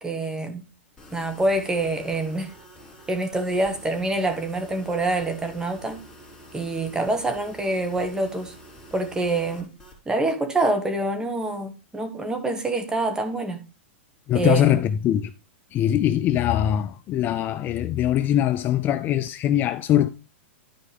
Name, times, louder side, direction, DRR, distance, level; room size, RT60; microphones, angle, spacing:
voice 1, 0.0-0.6 1.1-2.5 3.1-6.0 6.5-8.5 8.9-9.7 10.0-13.6 14.3-14.8, right 2 dB, 10° right, 1.6 m, -26 dB
sound 1, 1.0-10.0, equal, 10° left, 3.7 m, -47 dB
voice 2, 14.3-15.3 15.7-20.1, left 11 dB, 30° left, 0.4 m, -22 dB
12.5 x 4.8 x 3.4 m
hypercardioid pair, 135°, 7 cm